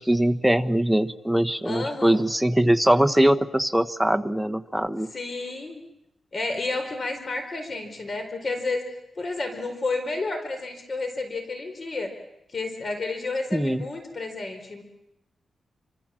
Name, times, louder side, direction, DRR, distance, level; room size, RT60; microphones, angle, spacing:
voice 1, 0.0-5.1 13.5-13.8, right 1 dB, ahead, 9 dB, 1.1 m, -22 dB
voice 2, 1.6-2.2 5.1-5.8 6.3-8.9 9.1-12.1 12.5-14.8, left 3 dB, 40° left, 6 dB, 4.3 m, -31 dB
29.0 x 25.5 x 7.6 m, 0.85 s
wide cardioid pair, 115°, 0 cm